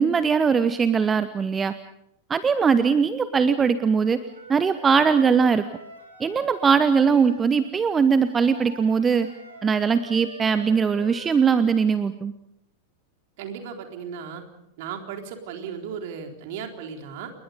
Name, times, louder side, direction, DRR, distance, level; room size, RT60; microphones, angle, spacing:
voice 1, 0.0-1.7 2.3-4.2 4.5-5.6 6.2-9.3 9.6-12.3, right 6 dB, 20° right, 13 dB, 0.9 m, -20 dB
Wind instrument woodwind instrument, 3.9-7.4 8.2-12.0, right 2 dB, 70° right, 5.3 m, -45 dB
voice 2, 13.4-14.4 14.8-17.3, right 7 dB, 50° right, 4 dB, 3.8 m, -35 dB
29.0 x 21.5 x 5.3 m, 0.79 s
figure-of-eight pair, 90°, 0 cm